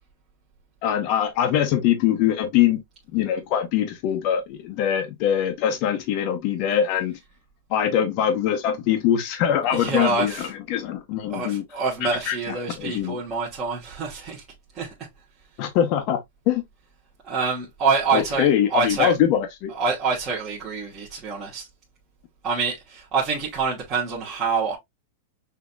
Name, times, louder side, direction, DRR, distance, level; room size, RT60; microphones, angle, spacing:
voice 1, 0.8-2.8 3.1-7.2 7.7-11.6 12.0-13.2 15.6-16.2 16.5-16.6 18.1-19.7, left 10 dB, 35° left, 0.7 m, -23 dB
voice 2, 9.7-10.5 11.3-14.4 14.7-14.9 17.3-19.1 19.7-21.7 22.4-24.7, right 4 dB, 20° right, 1.3 m, -26 dB
6.1 x 2.8 x 2.3 m
supercardioid pair, 170°, 0 cm